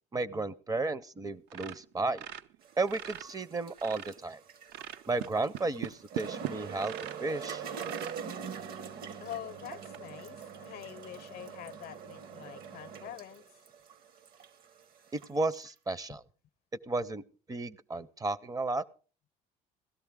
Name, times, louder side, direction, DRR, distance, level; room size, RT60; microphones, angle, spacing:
voice 1, 0.1-2.2 2.8-4.4 5.1-6.9 7.2-7.6 15.1-16.2 16.9-17.2 17.5-18.9, right 3 dB, 20° right, 0.5 m, -33 dB
sound 1, 1.5-3.3 3.6-4.3 4.7-7.2 7.7-8.2 8.8-8.9 9.3-9.4 9.9-10.0, right 13 dB, 80° right, 0.5 m, -41 dB
sound 2, 2.6-15.7, right 7 dB, 60° right, 1.0 m, -44 dB
voice 2, 9.2-13.6 16.1-16.2, left 12 dB, 65° left, 0.6 m, -45 dB
16.5 x 13.0 x 3.5 m
cardioid pair, 100°, 18 cm